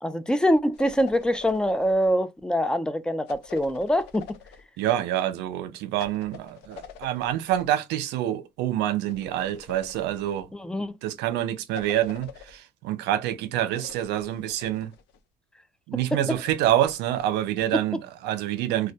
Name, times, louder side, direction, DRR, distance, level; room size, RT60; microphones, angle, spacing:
voice 1, 0.0-4.3 10.6-11.0 17.7-17.8, equal, 5° left, 0.3 m, -24 dB
sound 1, 0.7-2.1 3.3-4.7 6.0-7.7 9.1-10.4 11.7-12.6 13.7-15.2 16.4-17.8, left 8 dB, 85° left, 0.5 m, -45 dB
voice 2, 4.8-10.5 11.0-14.9 15.9-18.9, right 12 dB, 90° right, 0.5 m, -27 dB
2.2 x 2.1 x 2.6 m
cardioid pair, 110°, 17 cm